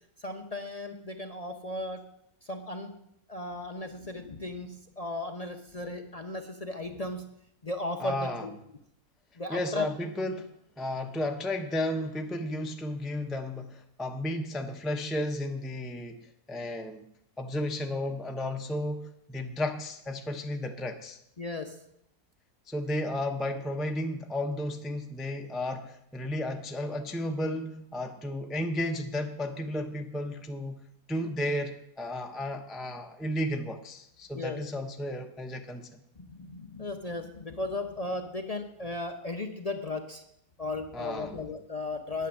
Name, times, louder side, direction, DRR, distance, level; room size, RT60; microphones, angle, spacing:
voice 1, 0.2-2.0 2.4-2.9 3.3-7.2 7.6-8.5 9.4-9.9 21.4-21.8 34.3-34.6 36.2-40.2 40.6-42.3, left 2 dB, 35° left, 4 dB, 0.7 m, -36 dB
voice 2, 8.0-8.5 9.5-10.5 10.8-21.2 22.7-30.8 31.1-36.0 40.9-41.4, left 1 dB, ahead, 4 dB, 0.5 m, -33 dB
9.4 x 9.4 x 7.1 m, 0.76 s
omnidirectional pair, 1.6 m